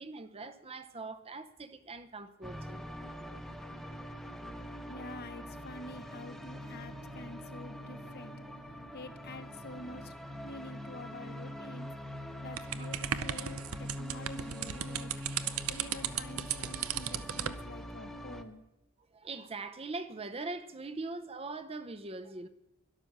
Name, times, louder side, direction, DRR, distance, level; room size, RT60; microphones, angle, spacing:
voice 1, 0.0-2.8 12.8-12.9 19.1-22.5, right 3 dB, 30° right, 0.7 m, -42 dB
sound 1, 2.4-18.4, equal, ahead, 0.9 m, -44 dB
voice 2, 4.9-8.4 8.9-10.1 10.4-11.9 12.4-15.1 15.7-18.6, left 2 dB, 50° left, 0.9 m, -47 dB
sound 2, 12.6-17.6, right 9 dB, 85° right, 0.7 m, -36 dB
12.5 x 11.5 x 6.7 m
head